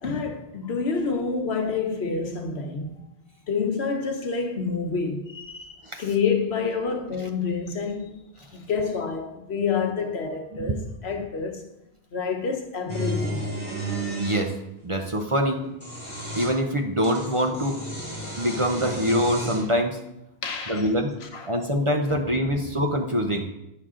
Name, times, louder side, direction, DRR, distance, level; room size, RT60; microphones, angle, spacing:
voice 1, 0.0-3.0 3.5-8.2 8.5-11.7 12.1-13.5 20.4-20.9 21.2-21.5 22.1-22.4, left 5 dB, 75° left, 1.2 m, -28 dB
voice 2, 10.5-10.9 14.2-14.6 14.8-15.6 16.4-17.8 18.4-20.0 20.7-21.1 21.5-23.5, equal, 35° right, 0.7 m, -24 dB
sound 1, 12.9-14.5 15.6-16.6 17.0-19.7, right 1 dB, 10° right, 2.9 m, -32 dB
9.7 x 6.5 x 3.7 m
omnidirectional pair, 1.1 m